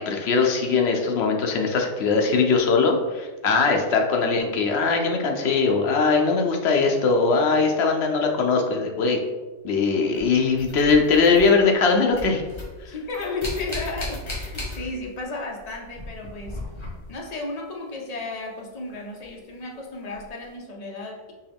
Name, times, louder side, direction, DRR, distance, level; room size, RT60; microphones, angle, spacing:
voice 1, 0.0-9.2 9.6-12.4, left 4 dB, 65° left, 2 dB, 0.9 m, -21 dB
sound 1, 10.1-11.8 12.1-15.2 15.5-17.3 19.2-19.3 20.1-20.3, left 2 dB, 25° left, 1.2 m, -36 dB
voice 2, 12.9-16.6 17.1-21.3, left 2 dB, 40° left, 0 dB, 0.7 m, -33 dB
4.6 x 2.9 x 3.5 m, 1.3 s
omnidirectional pair, 1.2 m